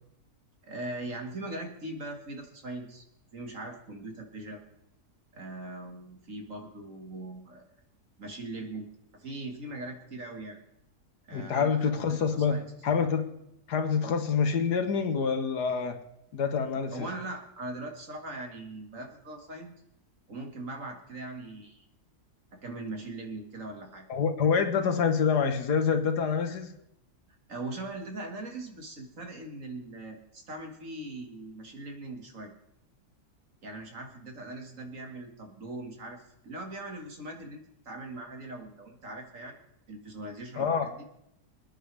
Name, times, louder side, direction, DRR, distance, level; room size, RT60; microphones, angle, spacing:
voice 1, 0.6-3.0 3.3-4.6 5.3-7.7 8.2-8.9 9.1-10.6 11.3-12.7 13.0-13.1 16.9-19.7 20.3-21.8 22.5-24.1 27.5-32.5 33.6-39.6 39.9-41.0, right 2 dB, 55° right, 3 dB, 2.4 m, -40 dB
voice 2, 11.3-12.6 12.8-13.3 13.7-16.0 16.3-17.1 24.1-26.7 40.6-40.9, left 6 dB, 85° left, 7 dB, 1.9 m, -26 dB
26.0 x 9.9 x 3.4 m, 0.79 s
omnidirectional pair, 1.7 m